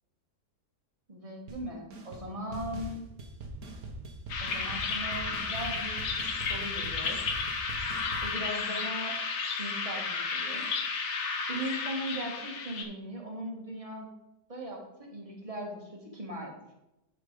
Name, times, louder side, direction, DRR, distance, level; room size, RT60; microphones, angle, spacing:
voice 1, 1.1-3.1 4.4-6.2 6.5-7.4 8.2-9.1 9.6-10.7 11.5-14.1 14.5-16.5, right 1 dB, 20° right, -1 dB, 1.8 m, -39 dB
sound 1, 1.5-1.6 1.9-2.3 2.5-8.3, right 2 dB, 60° right, 1.6 m, -42 dB
sound 2, 4.3-12.8, left 5 dB, 75° left, 1.8 m, -33 dB
10.5 x 4.4 x 5.2 m, 0.92 s
omnidirectional pair, 1.8 m